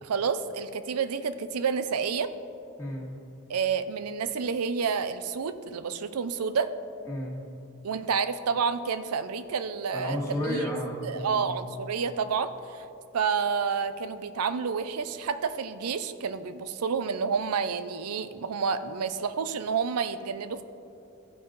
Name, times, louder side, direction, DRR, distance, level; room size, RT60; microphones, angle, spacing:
voice 1, 0.0-2.3 3.5-6.7 7.8-10.7 11.0-12.8 13.1-20.6, right 6 dB, 85° right, 12 dB, 0.5 m, -29 dB
voice 2, 2.8-3.1 7.0-7.4 9.9-11.5, equal, 15° left, -4 dB, 1.7 m, -32 dB
15.0 x 5.5 x 3.9 m, 2.7 s
head